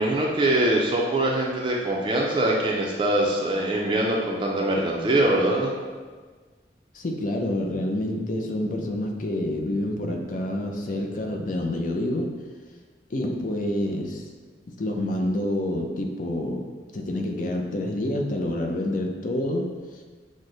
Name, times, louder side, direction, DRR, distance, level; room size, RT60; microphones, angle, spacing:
voice 1, 0.0-5.7, right 1 dB, 30° right, -2 dB, 0.4 m, -23 dB
voice 2, 6.9-12.3 13.1-14.2 14.8-16.6 16.9-19.7, left 1 dB, 45° left, 2 dB, 0.5 m, -27 dB
6.2 x 2.1 x 3.8 m, 1.4 s
head